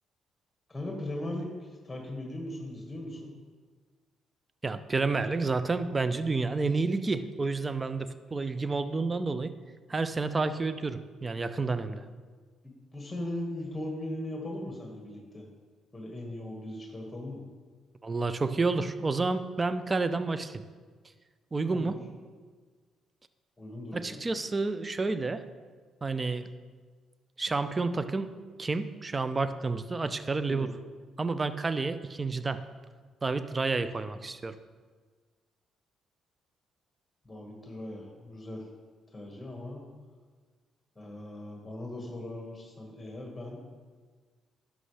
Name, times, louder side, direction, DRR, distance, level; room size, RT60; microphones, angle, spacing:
voice 1, 0.7-3.3 12.6-15.4 15.9-17.4 21.7-22.0 23.6-24.3 30.5-30.7 37.3-38.6 39.1-39.9 41.0-43.6, left 1 dB, 15° left, 0 dB, 1.8 m, -39 dB
voice 2, 4.6-9.5 9.9-12.0 18.0-20.6 21.5-21.9 23.9-25.4 26.0-26.5 27.4-28.3 28.6-30.7 31.2-32.6 33.2-34.6, right 3 dB, 30° right, 12 dB, 0.6 m, -30 dB
11.0 x 6.3 x 3.4 m, 1.5 s
hypercardioid pair, 50°, 0 cm